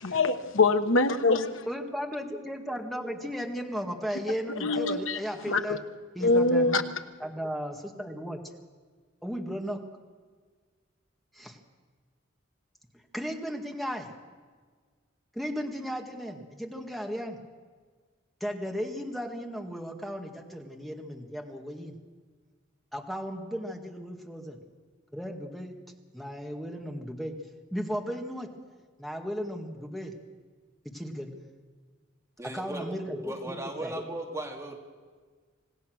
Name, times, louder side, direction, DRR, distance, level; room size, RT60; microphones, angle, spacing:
voice 1, 0.0-1.7 4.6-5.2 5.5-5.8 6.2-6.8, left 3 dB, 85° left, 8 dB, 1.3 m, -24 dB
voice 2, 1.7-5.8 6.1-6.8 7.2-8.4 9.2-9.8 11.3-11.6 13.1-14.1 15.3-17.4 18.4-22.0 22.9-24.6 25.1-25.8 26.1-27.4 27.7-28.5 29.0-30.1 30.9-31.3 32.4-34.0, equal, ahead, 2 dB, 2.0 m, -35 dB
voice 3, 32.4-33.0 33.2-34.8, right 1 dB, 15° right, 0 dB, 2.3 m, -37 dB
26.5 x 18.0 x 6.4 m, 1.5 s
head